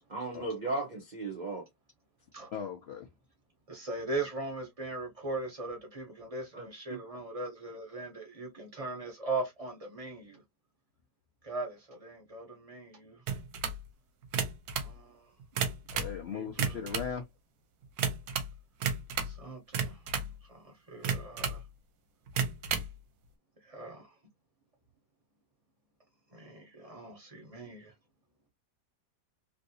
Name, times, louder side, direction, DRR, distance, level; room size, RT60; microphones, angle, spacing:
voice 1, 0.1-1.7 6.5-7.0, right 2 dB, 85° right, 0.4 m, -36 dB
voice 2, 2.5-3.1 15.9-17.2, left 7 dB, 75° left, 0.5 m, -38 dB
voice 3, 3.7-10.4 11.4-13.2 14.8-15.3 16.3-16.9 19.2-21.6 23.6-24.1 26.3-27.9, right 2 dB, 30° right, 0.7 m, -40 dB
sound 1, 13.3-13.8 14.2-14.9 15.4-16.2 16.5-17.1 18.0-18.5 18.8-19.4 19.7-20.3 21.0-21.6 22.3-22.9, right 6 dB, 70° right, 1.1 m, -32 dB
3.1 x 2.7 x 2.7 m
omnidirectional pair, 1.9 m